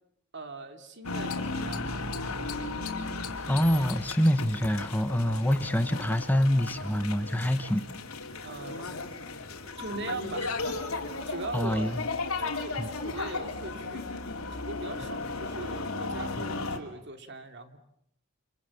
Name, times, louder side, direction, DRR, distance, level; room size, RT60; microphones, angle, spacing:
voice 1, 0.3-2.2 8.4-9.0 9.8-12.0 12.4-14.2 14.5-17.8, right 2 dB, 55° right, 7 dB, 2.8 m, -40 dB
sound 1, 1.0-16.8, left 3 dB, 85° left, 3.5 m, -35 dB
voice 2, 3.5-7.8 11.5-12.0 12.8-12.9, equal, 10° left, 9 dB, 1.3 m, -26 dB
29.5 x 27.5 x 7.2 m, 0.77 s
head